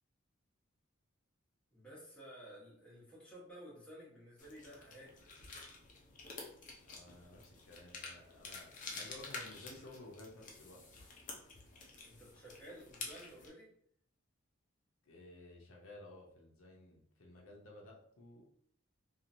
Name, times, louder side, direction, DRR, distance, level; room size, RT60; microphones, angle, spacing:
voice 1, 1.7-5.2 12.0-13.7, equal, 5° left, -7 dB, 1.0 m, -54 dB
sound 1, 4.4-13.5, left 3 dB, 40° left, 0.6 m, -50 dB
voice 2, 6.8-10.8 15.0-18.5, left 2 dB, 75° left, -2 dB, 0.7 m, -55 dB
2.9 x 2.5 x 2.6 m, 0.67 s
head